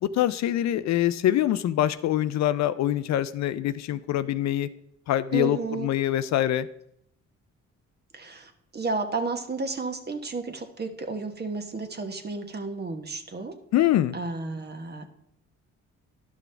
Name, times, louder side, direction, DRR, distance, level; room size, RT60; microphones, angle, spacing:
voice 1, 0.0-4.7 5.1-6.7 13.7-14.2, left 12 dB, 65° left, 14 dB, 0.5 m, -24 dB
voice 2, 5.3-5.9 8.1-13.5 14.1-15.1, right 3 dB, 35° right, 6 dB, 1.1 m, -32 dB
11.5 x 6.1 x 3.4 m, 0.73 s
cardioid pair, 90°, 30 cm